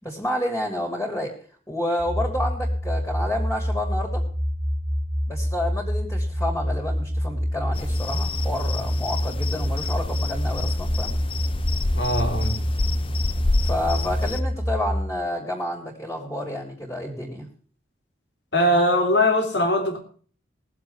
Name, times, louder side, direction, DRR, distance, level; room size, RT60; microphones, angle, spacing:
voice 1, 0.0-1.3 1.7-4.2 5.3-11.1 13.6-17.5, left 1 dB, 15° left, 0 dB, 3.2 m, -29 dB
sound 1, 2.0-15.0, equal, 55° right, 1.8 m, -26 dB
sound 2, 7.7-14.4, left 2 dB, 30° left, 0.6 m, -29 dB
voice 2, 11.9-12.6 18.5-20.0, left 1 dB, 70° left, 5 dB, 3.2 m, -21 dB
21.0 x 7.6 x 4.3 m, 0.43 s
head